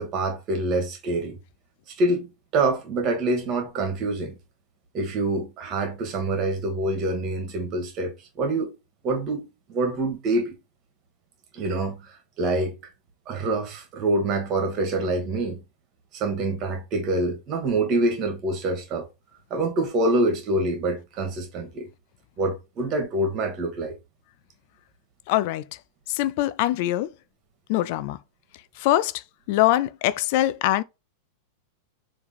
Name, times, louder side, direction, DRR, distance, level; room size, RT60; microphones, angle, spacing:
voice 1, 0.0-1.4 1.9-2.3 2.5-4.4 4.9-8.7 9.0-9.4 9.7-10.6 11.5-12.0 12.4-12.7 13.3-15.6 16.1-19.1 19.5-21.9 22.4-24.0, right 2 dB, 35° right, 2.1 m, -26 dB
voice 2, 25.3-25.6 26.1-27.1 27.7-28.2 28.8-29.2 29.5-30.8, left 14 dB, 50° left, 0.4 m, -23 dB
6.8 x 3.3 x 4.2 m
figure-of-eight pair, 90°, 0 cm